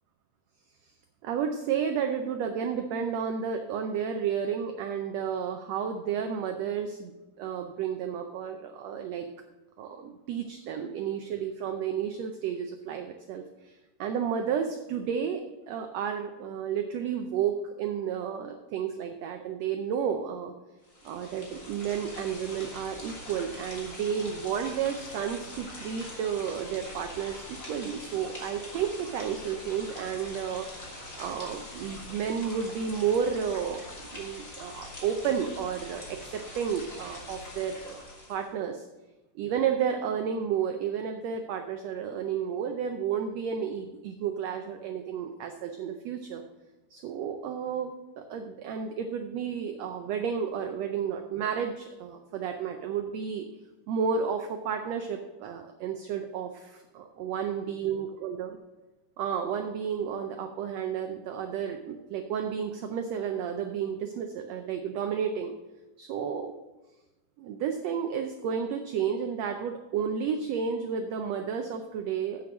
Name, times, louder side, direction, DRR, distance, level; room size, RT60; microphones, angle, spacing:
voice 1, 1.2-9.3 9.8-15.4 15.7-20.5 21.0-33.8 34.1-38.9 39.4-46.4 46.9-53.5 53.9-58.6 59.2-65.5 66.0-66.5 67.4-72.4, right 7 dB, 80° right, 5 dB, 1.5 m, -32 dB
sound 1, 20.8-38.5, left 2 dB, 30° left, 1.2 m, -43 dB
8.1 x 5.9 x 6.0 m, 1.1 s
omnidirectional pair, 3.7 m